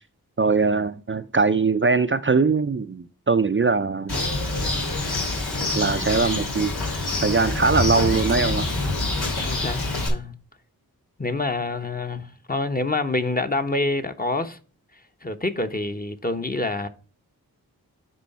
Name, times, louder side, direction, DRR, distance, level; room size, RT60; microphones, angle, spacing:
voice 1, 0.4-4.2 5.8-6.7 7.2-8.6, right 4 dB, 30° right, 0.6 m, -21 dB
Bird, 4.1-10.1, left 2 dB, 85° left, 2.7 m, -26 dB
voice 2, 9.4-10.3 11.2-14.6 15.2-16.9, left 2 dB, 25° left, 1.1 m, -27 dB
9.5 x 3.8 x 5.5 m
cardioid pair, 45°, 37 cm